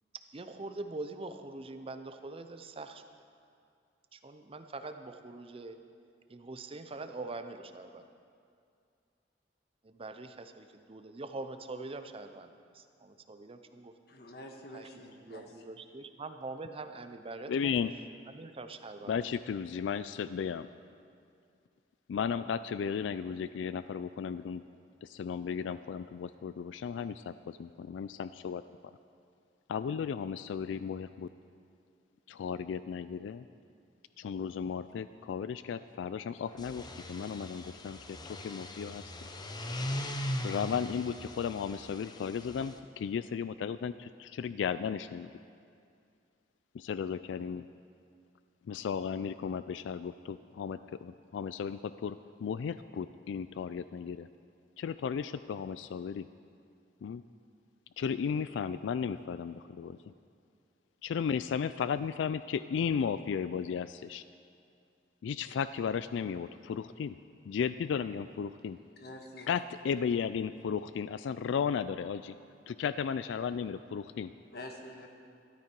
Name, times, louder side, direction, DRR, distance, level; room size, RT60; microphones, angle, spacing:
voice 1, 0.3-3.0 4.1-5.8 6.3-8.0 9.8-13.9 14.7-17.7 18.3-19.2, right 2 dB, 30° right, 8 dB, 0.6 m, -43 dB
voice 2, 14.1-15.5 69.0-69.5 74.5-75.1, left 1 dB, 60° left, 2 dB, 1.4 m, -47 dB
voice 3, 17.5-17.9 19.1-20.7 22.1-24.6 25.0-28.6 29.7-31.3 32.3-33.4 34.2-38.2 38.4-39.0 40.4-45.3 46.7-47.6 48.7-54.3 54.8-56.3 57.0-57.2 58.0-60.1 61.0-64.2 65.2-67.2 67.5-68.8 69.5-72.4 72.7-74.3, left 7 dB, 85° left, 14 dB, 0.3 m, -35 dB
sound 1, 36.5-42.8, left 1 dB, 25° left, 0.7 m, -40 dB
13.0 x 13.0 x 4.5 m, 2.3 s
head